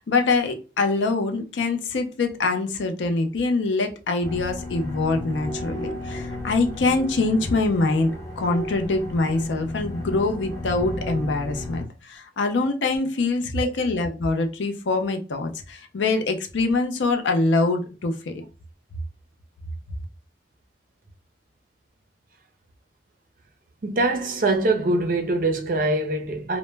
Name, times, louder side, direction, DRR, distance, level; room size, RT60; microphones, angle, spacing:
voice 1, 0.0-18.4, left 3 dB, 90° left, 0.5 m, -24 dB
sound 1, 4.2-11.8, left 1 dB, 15° left, 0.5 m, -34 dB
voice 2, 23.8-26.6, right 2 dB, 50° right, 0.4 m, -23 dB
2.0 x 2.0 x 3.2 m
head